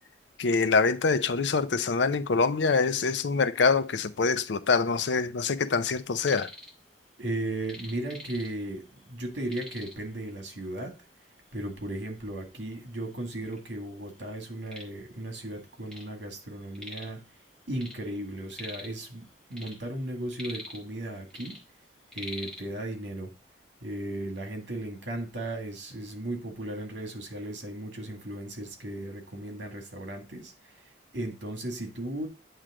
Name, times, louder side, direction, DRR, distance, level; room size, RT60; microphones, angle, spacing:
voice 1, 0.4-6.5, left 4 dB, 75° left, 0.6 m, -25 dB
sound 1, 6.1-6.7 7.0-8.8 9.1-9.2 9.5-10.1 10.9-11.0 11.5-11.6 12.4-12.5 12.7-13.6 14.1-16.1 16.4-17.2 17.5-19.0 19.4-21.0 21.3-22.6, left 1 dB, 5° left, 1.3 m, -44 dB
voice 2, 7.2-10.9 11.5-17.2 17.7-21.6 22.1-23.3 23.8-30.5 31.1-32.3, right 1 dB, 80° right, 2.0 m, -36 dB
8.9 x 3.2 x 4.8 m
head